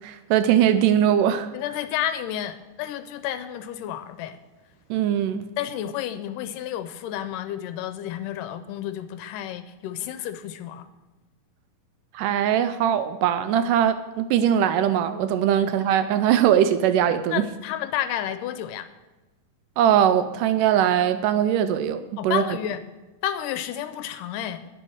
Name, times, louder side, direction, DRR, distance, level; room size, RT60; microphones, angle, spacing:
voice 1, 0.0-1.5 4.9-5.5 12.1-17.5 19.8-22.4, right 10 dB, 80° right, 11 dB, 2.0 m, -21 dB
voice 2, 1.5-4.4 5.6-10.9 15.6-15.7 17.3-18.9 22.2-22.8 23.2-24.7, left 11 dB, 80° left, 11 dB, 2.0 m, -31 dB
10.5 x 8.8 x 6.4 m, 1.1 s
omnidirectional pair, 4.0 m